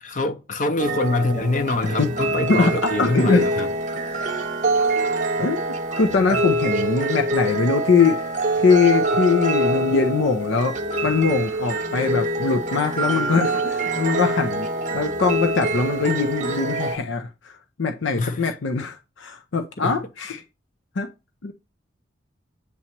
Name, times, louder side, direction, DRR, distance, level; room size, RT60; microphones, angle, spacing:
voice 1, 0.0-3.7 6.3-6.4 18.2-18.5 19.8-20.1, left 2 dB, 40° left, 0.6 m, -25 dB
sound 1, 0.8-17.0, right 2 dB, 40° right, 0.7 m, -25 dB
voice 2, 2.4-3.5 5.4-5.6 5.9-8.2 8.6-10.8 11.0-14.7 14.9-20.4 21.0-21.1 21.4-21.5, left 4 dB, 80° left, 0.6 m, -22 dB
8.4 x 2.9 x 4.3 m
head